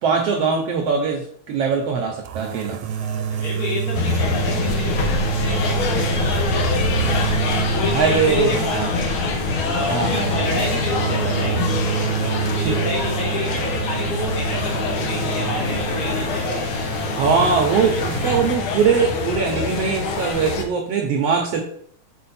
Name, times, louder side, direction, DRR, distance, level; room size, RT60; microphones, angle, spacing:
voice 1, 0.0-2.8 7.9-8.9 9.9-10.5 12.6-12.7 17.2-21.6, right 5 dB, 70° right, 1 dB, 1.5 m, -21 dB
sound 1, 2.2-18.4, right 8 dB, 90° right, 2.1 m, -27 dB
voice 2, 2.9-7.3 7.7-9.2 9.6-11.8 12.2-16.9, left 2 dB, 60° left, -2 dB, 2.9 m, -29 dB
sound 2, 3.9-20.6, left 4 dB, 80° left, 1.1 m, -25 dB
6.7 x 4.6 x 4.2 m, 0.64 s
omnidirectional pair, 3.5 m